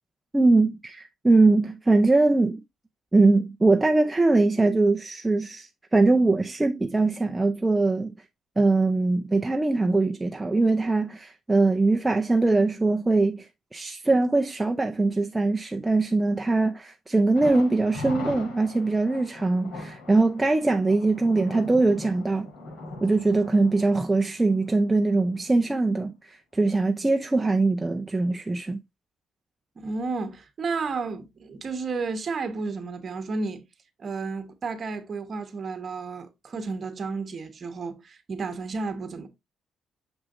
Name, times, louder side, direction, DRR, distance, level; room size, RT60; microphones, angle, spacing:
voice 1, 0.3-2.6 3.1-8.1 8.6-13.5 13.7-22.5 23.0-28.8, right 3 dB, 10° right, 0.5 m, -22 dB
Thunder, 17.4-25.1 25.4-25.5 25.9-26.0, left 2 dB, 80° left, 3.9 m, -40 dB
voice 2, 29.8-33.6 34.0-39.3, right 4 dB, 35° right, 1.2 m, -32 dB
6.3 x 5.9 x 2.5 m
cardioid pair, 135°, 0 cm